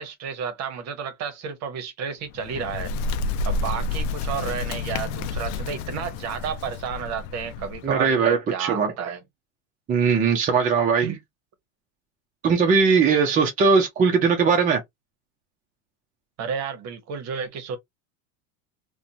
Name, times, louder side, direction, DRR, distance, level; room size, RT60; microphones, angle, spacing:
voice 1, 0.0-2.9 3.4-9.2 11.0-11.2 16.4-17.8, right 7 dB, 40° right, 0.9 m, -32 dB
Bird, 2.3-8.0, left 3 dB, 70° left, 0.5 m, -30 dB
voice 2, 7.8-8.9 9.9-11.1 12.4-14.8, right 5 dB, 20° right, 0.5 m, -20 dB
2.5 x 2.2 x 2.7 m
supercardioid pair, 115°, 39 cm